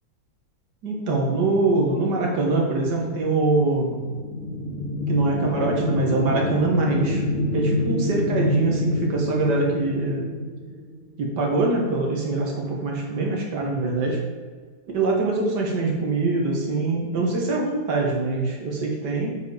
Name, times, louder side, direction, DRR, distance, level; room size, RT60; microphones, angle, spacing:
voice 1, 0.8-4.0 5.1-7.3 7.5-10.3 11.2-14.2 14.9-19.4, right 3 dB, 70° right, 0 dB, 2.0 m, -23 dB
sound 1, 3.6-11.1, left 1 dB, 60° left, 2.1 m, -27 dB
7.8 x 4.8 x 4.9 m, 1.5 s
omnidirectional pair, 2.0 m